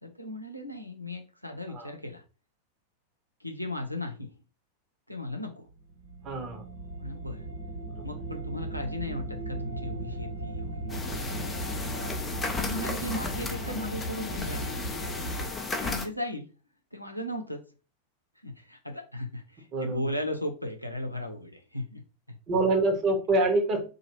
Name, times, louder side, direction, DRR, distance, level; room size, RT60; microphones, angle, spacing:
voice 1, 0.0-2.2 3.4-4.3 5.1-5.6 7.0-7.5 8.0-11.6 12.6-14.8 15.8-16.5 16.9-17.6 18.4-22.0 22.3-22.4, left 1 dB, 90° left, 3 dB, 0.6 m, -36 dB
sound 1, 5.7-15.5, right 1 dB, 75° right, 1.1 m, -37 dB
voice 2, 6.2-6.6 8.0-8.1 13.7-13.8 19.7-20.0 22.5-23.9, right 2 dB, 30° right, 3 dB, 1.0 m, -26 dB
sound 2, 10.9-16.1, left 3 dB, 15° left, 0.5 m, -34 dB
2.9 x 2.4 x 3.0 m, 0.34 s
figure-of-eight pair, 90°, 0 cm